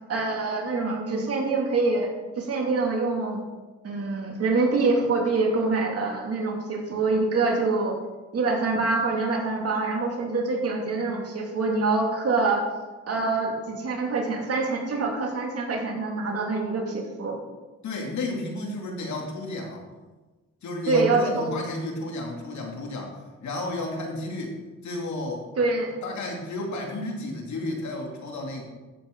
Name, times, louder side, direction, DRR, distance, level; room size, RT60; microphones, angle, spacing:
voice 1, 0.1-2.1 2.4-3.4 3.8-8.0 8.3-12.6 13.1-17.4 20.9-21.6 25.6-25.9, right 3 dB, 50° right, 0 dB, 2.6 m, -25 dB
voice 2, 17.8-19.8 20.6-24.6 24.8-25.4 26.0-28.6, left 2 dB, 70° left, 0 dB, 2.7 m, -32 dB
14.5 x 7.6 x 3.9 m, 1.2 s
cardioid pair, 90°, 30 cm